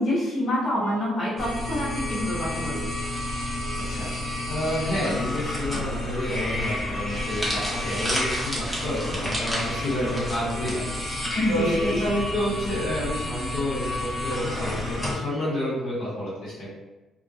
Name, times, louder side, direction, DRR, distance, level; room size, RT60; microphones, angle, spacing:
voice 1, 0.0-2.8 11.3-12.0, left 1 dB, 55° left, -7 dB, 1.0 m, -26 dB
sound 1, 0.8-5.1, right 4 dB, 90° right, 0.5 m, -43 dB
sound 2, 1.4-15.2, left 1 dB, 25° left, 1.1 m, -31 dB
voice 2, 4.5-10.8 11.5-16.7, left 1 dB, 80° left, -8 dB, 0.9 m, -29 dB
sound 3, 7.1-11.4 11.6-11.9 12.8-13.0, equal, 10° right, 0.8 m, -32 dB
2.2 x 2.1 x 2.6 m, 1.1 s
cardioid pair, 90°, 0 cm